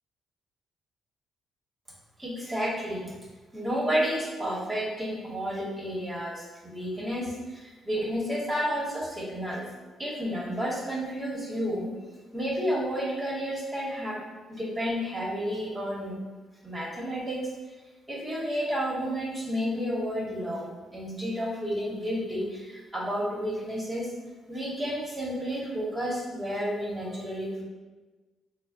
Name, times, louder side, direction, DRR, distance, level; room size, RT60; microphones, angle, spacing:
voice 1, 2.2-3.1 3.5-9.7 10.0-11.9 12.3-14.2 14.5-16.2 16.6-17.5 18.1-24.1 24.5-27.6, equal, 15° right, -5 dB, 1.2 m, -31 dB
4.1 x 2.1 x 3.4 m, 1.2 s
cardioid pair, 90°, 0 cm